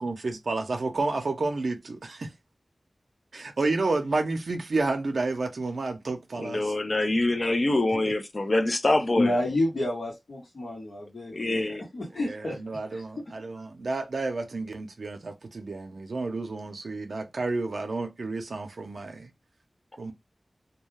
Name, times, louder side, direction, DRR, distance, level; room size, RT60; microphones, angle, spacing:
voice 1, 0.0-2.3 3.3-6.7 7.9-8.0 11.5-11.7 12.2-19.3 20.0-20.1, right 3 dB, 80° right, 0.5 m, -31 dB
voice 2, 6.4-9.4 11.3-11.8, left 2 dB, 50° left, 0.5 m, -25 dB
voice 3, 9.2-11.6 11.9-12.6, left 1 dB, 80° left, 1.1 m, -29 dB
2.3 x 2.2 x 3.1 m
wide cardioid pair, 60°, 0 cm